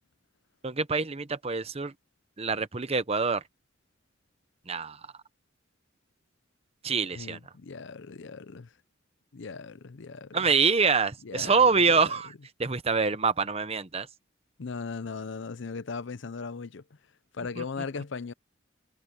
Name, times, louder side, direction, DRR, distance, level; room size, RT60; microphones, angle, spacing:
voice 1, 0.6-1.9 2.4-3.4 4.7-5.0 6.8-7.4 10.3-12.3 12.6-14.1 17.6-17.7, right 4 dB, 30° right, 1.0 m, -25 dB
voice 2, 7.1-8.7 9.3-10.4 11.2-12.2 14.6-16.8 17.3-18.3, left 4 dB, 65° left, 0.6 m, -38 dB
head